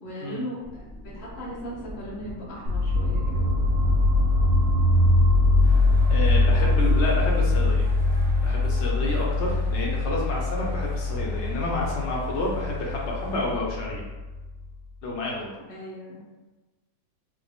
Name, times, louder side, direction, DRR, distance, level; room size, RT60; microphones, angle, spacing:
voice 1, 0.0-0.8 1.1-3.5 6.4-6.7 15.7-16.2, equal, 40° left, -6 dB, 0.8 m, -38 dB
sound 1, 0.6-5.7, equal, 35° right, 0.7 m, -43 dB
sound 2, 2.7-14.6, left 2 dB, 85° right, 1.4 m, -22 dB
sound 3, 5.6-13.6, left 2 dB, 55° left, 1.2 m, -47 dB
voice 2, 6.1-7.9 8.4-14.0 15.0-15.5, left 2 dB, 90° left, -3 dB, 0.6 m, -30 dB
4.5 x 2.0 x 3.5 m, 1.2 s
omnidirectional pair, 2.0 m